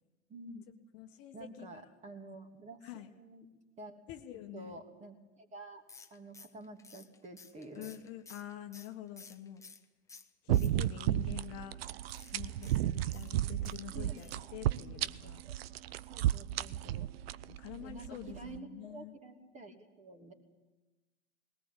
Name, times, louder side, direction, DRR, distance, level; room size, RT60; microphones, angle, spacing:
voice 1, 0.3-0.6 1.3-3.5 3.8-4.0 4.5-5.8 6.1-7.9 13.9-14.2 14.7-14.8 15.2-15.5 16.1-17.1 17.8-20.3, right 2 dB, 20° right, 4 dB, 2.9 m, -49 dB
voice 2, 0.9-1.7 2.8-3.1 4.1-4.7 7.7-9.6 10.4-11.8 12.3-15.4 17.5-19.2, left 12 dB, 40° left, 5 dB, 1.6 m, -46 dB
sound 1, 5.9-9.8 10.1-11.1 12.0-13.8 14.2-14.5 14.8-14.9 15.1-15.2, left 4 dB, 10° left, 1.1 m, -55 dB
sound 2, 10.5-18.6, right 13 dB, 60° right, 0.7 m, -34 dB
20.5 x 18.0 x 8.3 m, 1.1 s
hypercardioid pair, 100°, 35 cm